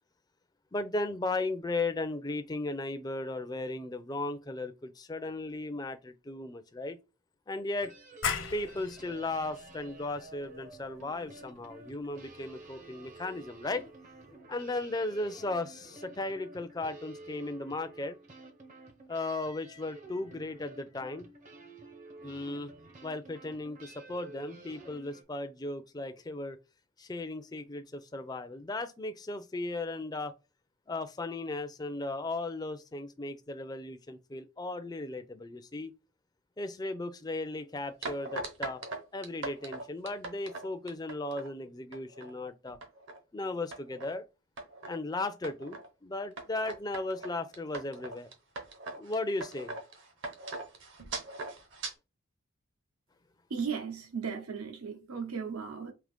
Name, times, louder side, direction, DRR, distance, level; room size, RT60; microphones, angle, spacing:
voice 1, 0.7-7.0 7.5-7.9 8.5-13.8 14.5-18.2 19.1-21.3 22.2-22.7 23.0-26.6 27.0-30.3 30.9-35.9 36.6-38.8 39.1-42.8 43.3-44.2 44.9-48.3 49.0-49.7, left 2 dB, 20° left, 0.4 m, -36 dB
sound 1, 7.8-25.2, right 2 dB, 35° right, 0.7 m, -51 dB
sound 2, 8.2-13.6, left 7 dB, 65° left, 0.7 m, -40 dB
sound 3, 38.0-41.5 41.9-42.3 42.7-43.2 43.7-44.1 44.6-45.0 45.4-45.9 46.4-51.9, right 2 dB, 60° right, 1.0 m, -41 dB
voice 2, 53.5-55.9, right 6 dB, 85° right, 1.0 m, -36 dB
3.7 x 2.8 x 3.5 m
head